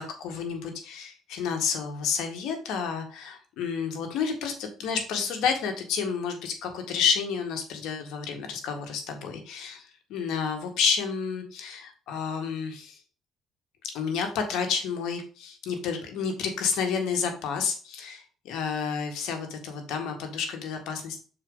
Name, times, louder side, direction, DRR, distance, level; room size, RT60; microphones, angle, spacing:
voice 1, 0.0-13.0 13.9-21.2, left 6 dB, 80° left, 4 dB, 1.8 m, -30 dB
6.6 x 4.5 x 3.9 m, 0.40 s
cardioid pair, 105°, 0 cm